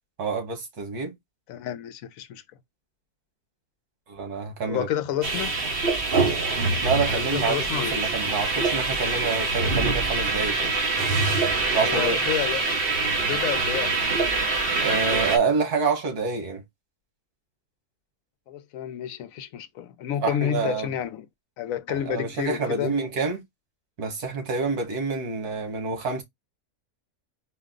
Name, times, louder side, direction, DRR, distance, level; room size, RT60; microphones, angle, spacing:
voice 1, 0.2-1.1 4.1-4.9 6.8-10.7 11.7-12.2 14.8-16.6 20.2-20.9 21.9-23.4 24.0-26.2, right 4 dB, 80° right, 1.9 m, -27 dB
voice 2, 1.5-2.4 4.7-5.5 7.1-8.0 11.8-12.6 13.3-14.1 18.5-21.3 21.6-22.9, left 10 dB, 70° left, 1.0 m, -30 dB
sound 1, 5.2-15.4, right 3 dB, 40° right, 1.2 m, -24 dB
4.4 x 2.2 x 3.7 m
omnidirectional pair, 1.6 m